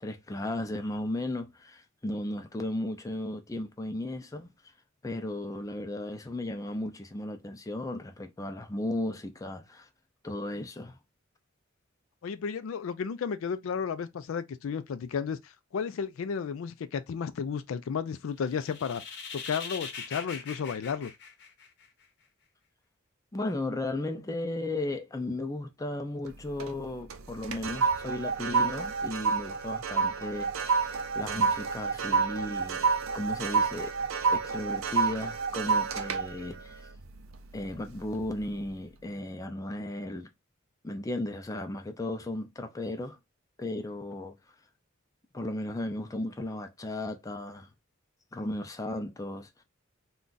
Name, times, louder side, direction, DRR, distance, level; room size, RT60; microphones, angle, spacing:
voice 1, 0.0-4.5 5.0-9.9 10.2-11.0 23.3-32.9 33.1-33.9 34.3-36.9 37.5-40.3 40.8-43.2 43.6-44.4 45.3-47.7 48.3-49.6, left 1 dB, 15° left, 0.4 m, -35 dB
voice 2, 12.2-19.0 19.3-21.1, left 6 dB, 80° left, 0.4 m, -33 dB
sound 1, 18.4-22.0, left 5 dB, 60° left, 0.8 m, -41 dB
sound 2, 26.3-26.8 27.1-37.7 38.1-38.4, right 5 dB, 90° right, 0.5 m, -29 dB
2.5 x 2.3 x 3.8 m
head